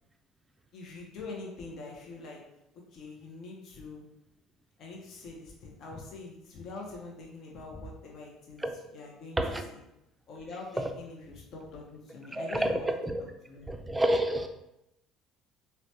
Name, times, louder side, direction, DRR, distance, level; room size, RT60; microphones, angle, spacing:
voice 1, 0.7-2.4 2.7-4.0 4.8-8.6 8.9-9.4 9.7-9.8 10.3-12.9 13.5-13.7, left 3 dB, 60° left, 0.6 m, -44 dB
voice 2, 12.3-13.2 13.7-14.5, right 1 dB, 15° right, 0.4 m, -29 dB
3.1 x 2.1 x 2.7 m
supercardioid pair, 85°, 0 cm